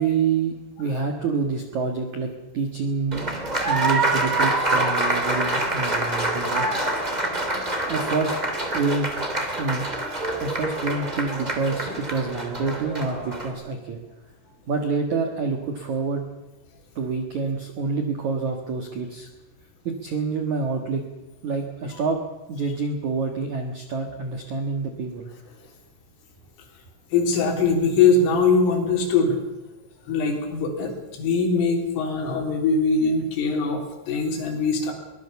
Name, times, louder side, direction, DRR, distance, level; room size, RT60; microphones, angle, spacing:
voice 1, 0.0-3.2 3.7-7.2 7.9-8.3 8.7-9.1 9.6-9.9 10.4-14.0 14.7-16.2 17.0-19.3 19.8-21.0 21.4-22.2 22.5-25.3, right 4 dB, 65° right, 4 dB, 1.9 m, -27 dB
Applause, 3.1-13.5, right 2 dB, 25° right, 1.0 m, -26 dB
voice 2, 27.1-29.4 30.1-34.9, left 4 dB, 75° left, 2 dB, 6.0 m, -22 dB
22.5 x 19.0 x 7.0 m, 1.0 s
omnidirectional pair, 5.9 m